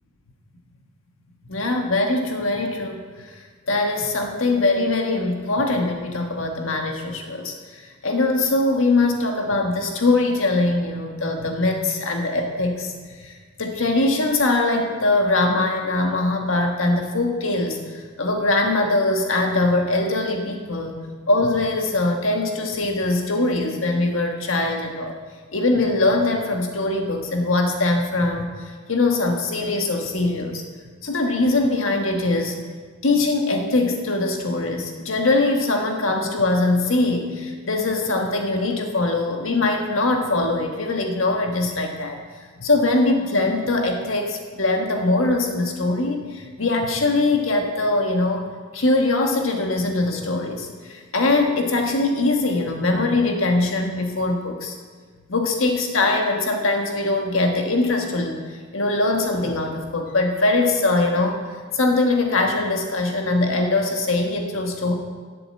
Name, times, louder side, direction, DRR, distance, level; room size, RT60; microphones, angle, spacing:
voice 1, 1.5-12.9 13.2-13.3 13.6-25.1 25.5-30.6 31.0-32.6 33.0-42.2 42.6-48.5 48.7-54.7 55.3-61.4 61.7-64.9, left 2 dB, 90° left, 2 dB, 1.5 m, -22 dB
10.5 x 7.7 x 7.6 m, 1.6 s
head